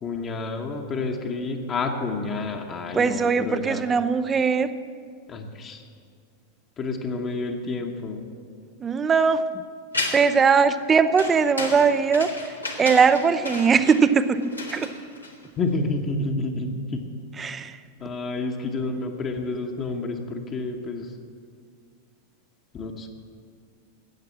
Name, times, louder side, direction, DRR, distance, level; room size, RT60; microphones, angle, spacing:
voice 1, 0.0-3.8 5.3-5.8 6.8-8.3 15.6-17.0 18.0-21.1 22.7-23.1, left 3 dB, 25° left, 2 dB, 1.1 m, -29 dB
voice 2, 2.9-4.7 8.8-9.5 10.1-14.4 14.7-14.9 17.4-17.8, right 5 dB, 20° right, 13 dB, 0.6 m, -20 dB
sound 1, 9.9-10.4 11.2-15.7, left 2 dB, 85° left, 1.7 m, -33 dB
13.5 x 8.7 x 7.3 m, 2.2 s
figure-of-eight pair, 90°, 0 cm